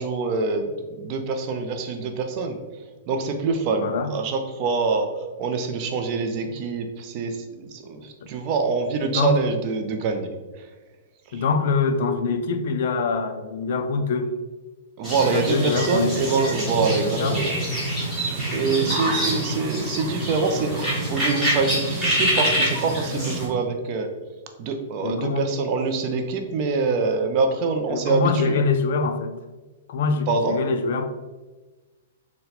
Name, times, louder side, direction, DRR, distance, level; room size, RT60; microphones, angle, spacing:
voice 1, 0.0-2.6 3.1-5.1 5.4-10.3 11.3-11.4 15.0-17.5 18.5-24.1 24.6-28.6 30.3-30.6, right 4 dB, 30° right, 5 dB, 0.4 m, -25 dB
voice 2, 3.8-4.1 6.4-6.5 8.0-8.1 9.0-9.4 11.3-14.3 15.3-16.3 17.0-17.4 25.0-25.5 27.9-29.4 29.9-31.0, left 4 dB, 55° left, 8 dB, 0.3 m, -24 dB
sound 1, 15.0-23.5, right 1 dB, 5° right, 1.1 m, -26 dB
4.1 x 2.1 x 4.0 m, 1.2 s
hypercardioid pair, 170°, 0 cm